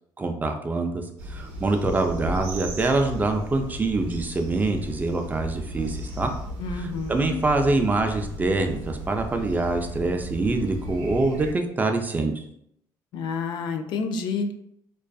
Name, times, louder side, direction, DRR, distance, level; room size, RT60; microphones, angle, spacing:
voice 1, 0.2-6.3 6.8-12.4, right 2 dB, 20° right, 4 dB, 0.3 m, -25 dB
sound 1, 1.2-11.5, equal, 85° right, 0.5 m, -36 dB
voice 2, 6.6-7.4 13.1-14.5, left 4 dB, 65° left, 6 dB, 0.3 m, -29 dB
2.4 x 2.3 x 2.3 m, 0.73 s
cardioid pair, 95°, 8 cm